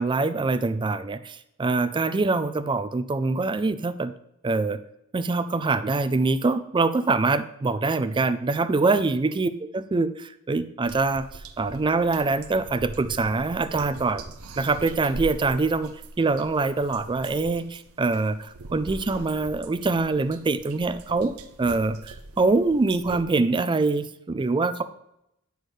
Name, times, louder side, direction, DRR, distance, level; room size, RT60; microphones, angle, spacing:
voice 1, 0.0-4.1 4.4-4.8 5.1-14.2 14.6-24.8, right 3 dB, 20° right, 12 dB, 0.4 m, -24 dB
sound 1, 10.8-23.2, right 2 dB, 80° right, 0.6 m, -42 dB
9.3 x 6.3 x 3.2 m, 0.81 s
head